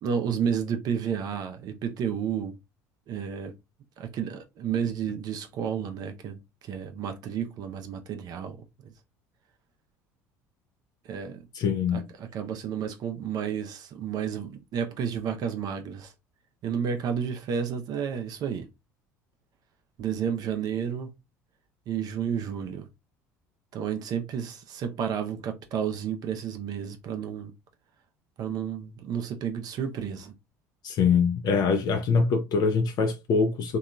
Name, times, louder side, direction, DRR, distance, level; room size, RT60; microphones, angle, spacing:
voice 1, 0.0-2.6 3.1-3.5 4.0-8.9 11.1-11.4 11.9-16.1 16.6-18.7 20.0-21.1 21.9-22.9 23.7-27.5 28.4-30.3, right 7 dB, 55° right, 0.5 m, -31 dB
voice 2, 11.5-12.0 30.8-33.8, left 5 dB, 50° left, 0.4 m, -24 dB
2.8 x 2.3 x 2.2 m
hypercardioid pair, 70°, 8 cm